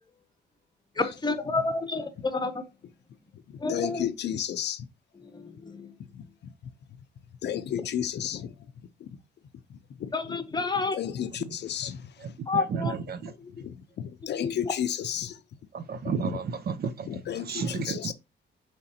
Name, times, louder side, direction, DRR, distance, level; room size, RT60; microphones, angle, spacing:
voice 1, 1.0-2.6 3.6-4.0 5.2-5.9 10.1-11.0 12.5-12.9 13.4-13.5 14.3-14.5, left 3 dB, 20° left, 0.8 m, -29 dB
voice 2, 3.7-4.9 6.1-6.5 7.4-8.6 9.0-9.1 9.7-10.6 10.9-12.3 13.5-15.4 16.0-16.4 17.1-18.1, left 9 dB, 60° left, 0.6 m, -33 dB
voice 3, 12.2-13.3 15.7-18.1, right 6 dB, 50° right, 0.6 m, -32 dB
5.0 x 3.1 x 2.8 m
cardioid pair, 90°, 20 cm